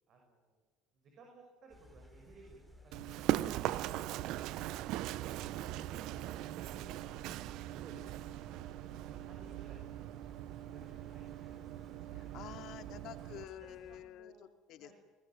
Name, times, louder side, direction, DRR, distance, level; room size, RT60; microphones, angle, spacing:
voice 1, 0.1-0.6 1.0-4.8 5.3-6.9 7.1-7.4 7.7-8.0 8.6-9.8 10.2-10.4 10.7-11.5 12.7-13.1 13.3-14.5 14.8-14.9, right 3 dB, 50° right, 2 dB, 6.4 m, -60 dB
sound 1, 1.7-14.1, equal, 10° right, 5.8 m, -59 dB
Run, 2.9-13.4, right 14 dB, 70° right, 0.8 m, -40 dB
voice 2, 3.3-4.1 12.0-14.9, left 11 dB, 60° left, 7 dB, 2.5 m, -50 dB
23.5 x 19.0 x 9.1 m, 1.3 s
supercardioid pair, 100°, 0 cm